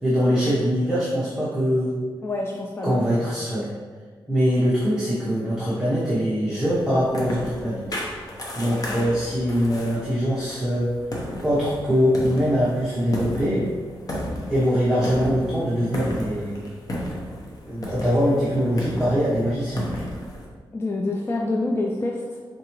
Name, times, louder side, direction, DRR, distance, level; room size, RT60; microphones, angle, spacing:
voice 1, 0.0-2.0 2.8-3.7 4.3-8.0 8.5-10.9 11.4-13.7 14.5-16.7 17.6-19.9, equal, 5° right, -9 dB, 0.9 m, -23 dB
voice 2, 2.2-3.2 8.9-9.1 20.7-22.4, left 2 dB, 30° left, -1 dB, 0.4 m, -27 dB
sound 1, 6.7-20.5, left 1 dB, 45° left, 0.8 m, -34 dB
4.8 x 3.5 x 3.0 m, 1.5 s
wide cardioid pair, 130°, 9 cm